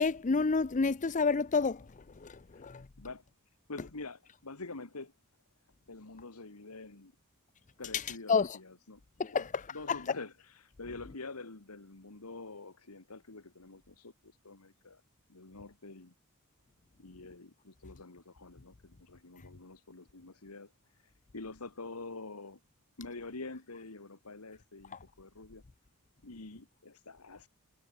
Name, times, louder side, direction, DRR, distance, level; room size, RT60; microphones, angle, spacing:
voice 1, 0.0-1.8 2.2-2.8 8.3-8.6 9.2-9.5 9.9-10.0, left 4 dB, 35° left, 0.6 m, -29 dB
voice 2, 2.5-3.2 3.7-5.1 5.9-7.1 7.8-9.0 9.3-15.0 15.3-16.1 17.0-22.6 23.0-25.6 26.2-27.5, left 3 dB, 85° left, 1.9 m, -47 dB
head